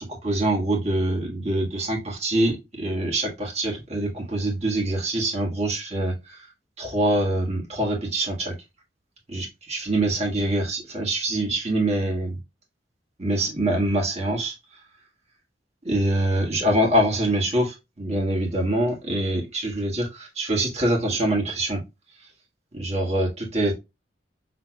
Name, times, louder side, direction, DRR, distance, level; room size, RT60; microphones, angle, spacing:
voice 1, 0.0-6.5 6.8-8.5 9.3-12.4 13.2-14.8 15.8-21.8 22.2-22.3 22.7-23.8, right 1 dB, 40° right, 0 dB, 1.6 m, -25 dB
6.1 x 3.3 x 2.2 m, 0.24 s
head